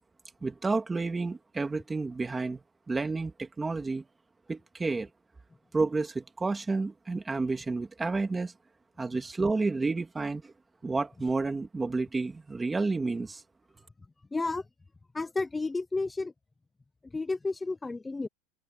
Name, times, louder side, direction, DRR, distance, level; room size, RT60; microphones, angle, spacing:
voice 1, 0.4-4.0 4.5-5.1 5.7-8.5 9.0-10.5 10.8-13.4, right 3 dB, 10° right, 2.1 m, -30 dB
voice 2, 14.3-14.6 15.1-16.3 17.1-18.3, left 3 dB, 10° left, 0.6 m, -31 dB
open air
supercardioid pair, 165°, 0 cm